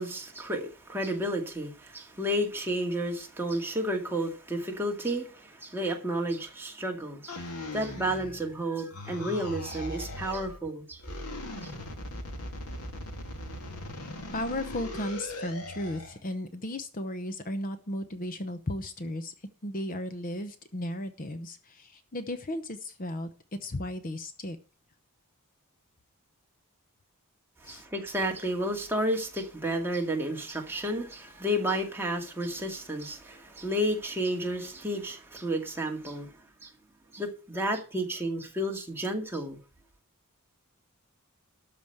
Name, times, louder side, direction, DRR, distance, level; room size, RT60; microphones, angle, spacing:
voice 1, 0.0-11.0 11.6-11.7 27.6-36.3 36.6-36.7 37.1-39.6, equal, 10° right, 2.1 m, -31 dB
sound 1, 7.3-8.6 8.9-10.6 11.0-16.2, left 1 dB, 90° left, 2.6 m, -39 dB
voice 2, 13.9-24.6 27.6-27.8, left 1 dB, 40° left, 0.8 m, -35 dB
13.0 x 5.1 x 7.9 m
head